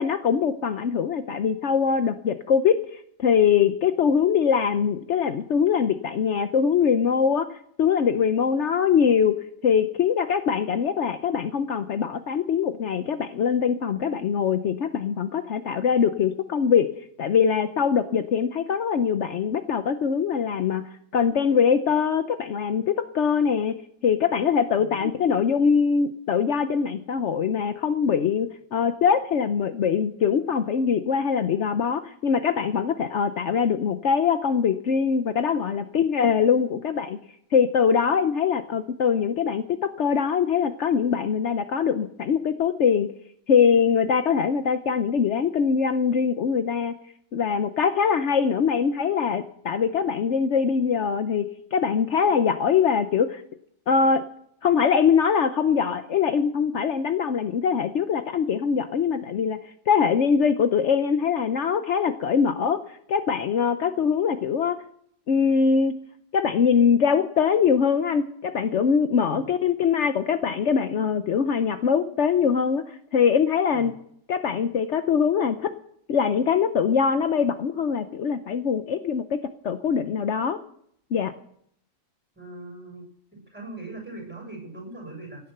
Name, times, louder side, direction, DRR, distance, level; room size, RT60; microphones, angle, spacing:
voice 1, 0.0-9.3 9.6-16.9 17.2-20.9 21.1-23.7 24.0-37.2 37.5-43.1 43.5-46.9 47.3-53.4 53.9-54.2 54.6-59.6 59.9-64.8 65.3-65.9 66.3-73.9 74.3-75.7 76.1-79.4 79.6-80.6 81.1-81.3, left 6 dB, 65° left, 9 dB, 1.1 m, -23 dB
voice 2, 82.4-83.0 83.5-85.4, right 2 dB, 10° right, 0 dB, 7.2 m, -40 dB
17.5 x 9.7 x 6.7 m, 0.67 s
omnidirectional pair, 1.4 m